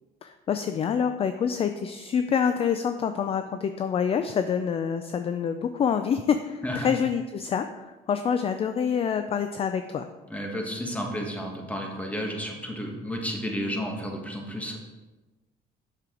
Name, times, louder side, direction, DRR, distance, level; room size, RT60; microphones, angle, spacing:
voice 1, 0.2-10.1, left 7 dB, 35° left, 9 dB, 0.4 m, -27 dB
voice 2, 10.3-14.8, equal, 10° left, 1 dB, 1.5 m, -32 dB
7.6 x 6.6 x 3.8 m, 1.2 s
cardioid pair, 110°, 17 cm